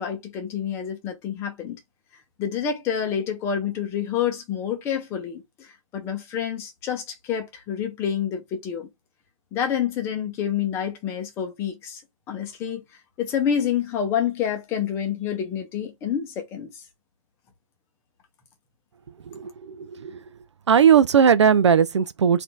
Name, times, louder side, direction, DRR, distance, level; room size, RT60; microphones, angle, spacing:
voice 1, 0.0-1.8 2.4-8.9 9.5-12.0 12.3-12.8 13.2-16.8, left 8 dB, 15° left, 0.8 m, -28 dB
voice 2, 19.3-20.2 20.7-22.4, right 7 dB, 55° right, 0.4 m, -18 dB
4.1 x 2.6 x 3.4 m
figure-of-eight pair, 140°, 18 cm